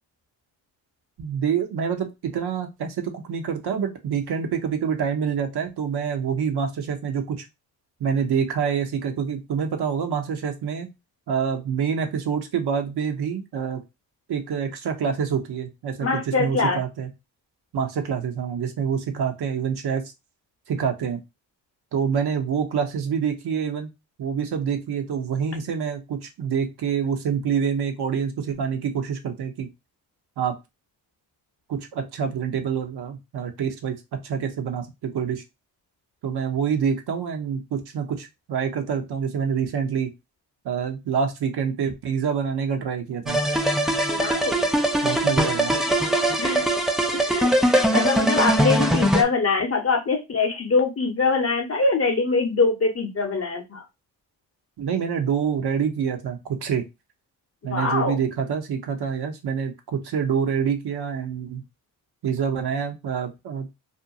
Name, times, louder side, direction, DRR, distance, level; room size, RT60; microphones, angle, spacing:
voice 1, 1.2-7.4 8.0-10.9 11.3-13.8 14.3-17.1 17.7-20.0 20.7-21.2 21.9-23.9 24.2-29.7 30.4-30.5 31.7-34.0 34.2-35.4 36.2-40.1 40.6-43.4 45.0-45.7 54.8-56.8 57.6-61.6 62.2-63.7, right 7 dB, 55° right, 5 dB, 0.8 m, -26 dB
voice 2, 16.0-16.8 44.1-44.7 46.4-46.7 47.1-53.8 57.6-58.2, left 4 dB, 30° left, 4 dB, 0.8 m, -23 dB
sound 1, 43.3-49.2, right 1 dB, ahead, 0.3 m, -21 dB
2.6 x 2.1 x 2.7 m, 0.23 s
supercardioid pair, 45°, 47 cm